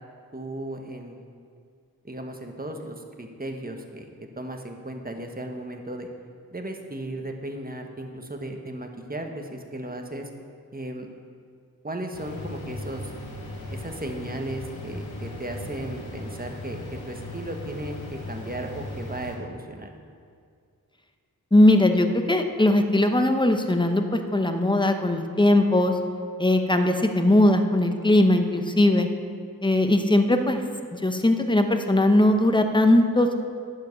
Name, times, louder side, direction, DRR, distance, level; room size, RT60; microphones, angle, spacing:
voice 1, 0.3-1.2 2.0-4.1 4.4-6.1 6.5-10.3 10.7-11.1 11.8-13.0 13.7-16.8 17.1-19.9, right 1 dB, 25° right, 3 dB, 1.4 m, -35 dB
sound 1, 12.1-19.4, left 1 dB, 85° left, 1.6 m, -38 dB
voice 2, 21.5-26.0 26.4-29.1 29.6-30.6 30.9-33.3, left 1 dB, 10° left, 6 dB, 1.0 m, -20 dB
10.5 x 7.5 x 6.7 m, 2.2 s
cardioid pair, 50°, 37 cm